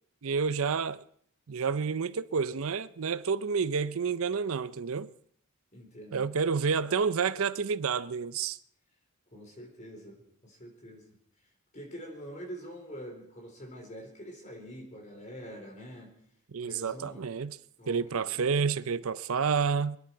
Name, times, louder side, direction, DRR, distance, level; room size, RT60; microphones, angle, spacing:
voice 1, 0.2-1.0 1.5-5.1 6.1-8.6 16.5-17.6 17.9-20.0, right 5 dB, 70° right, 0.5 m, -29 dB
voice 2, 5.7-6.2 9.3-11.2 11.7-16.1 16.6-17.5 17.8-18.4, equal, 30° left, 3.9 m, -45 dB
26.5 x 10.5 x 4.6 m
head